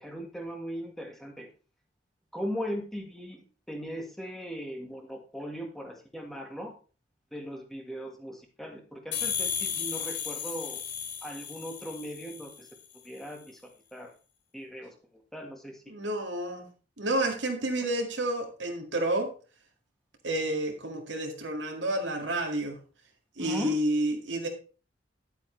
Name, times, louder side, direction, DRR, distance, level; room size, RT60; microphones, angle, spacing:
voice 1, 0.0-1.5 2.3-6.7 7.3-10.8 11.2-12.7 13.0-14.1 14.5-15.9 23.4-23.8, equal, ahead, 1 dB, 1.7 m, -39 dB
sound 1, 9.1-12.7, left 7 dB, 75° left, 1.8 m, -34 dB
voice 2, 15.9-16.6 17.0-19.3 20.2-22.8 23.4-24.5, right 1 dB, 80° right, 3 dB, 2.1 m, -30 dB
10.5 x 8.4 x 3.3 m, 0.35 s
head